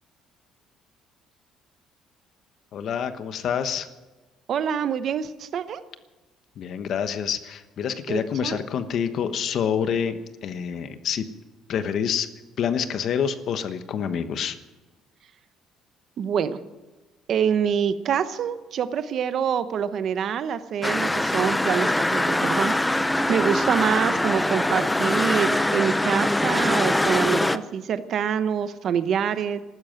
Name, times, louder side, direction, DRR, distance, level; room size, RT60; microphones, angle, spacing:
voice 1, 2.7-3.9 6.6-11.2 11.7-12.3 12.6-14.6, left 7 dB, 50° left, 10 dB, 1.1 m, -27 dB
voice 2, 4.5-5.8 8.1-8.6 16.2-16.6 17.3-22.8 23.3-29.6, right 8 dB, 45° right, 12 dB, 0.8 m, -26 dB
sound 1, 20.8-27.6, left 1 dB, 5° left, 0.5 m, -23 dB
14.0 x 12.5 x 7.8 m, 1.2 s
cardioid pair, 155°, 0 cm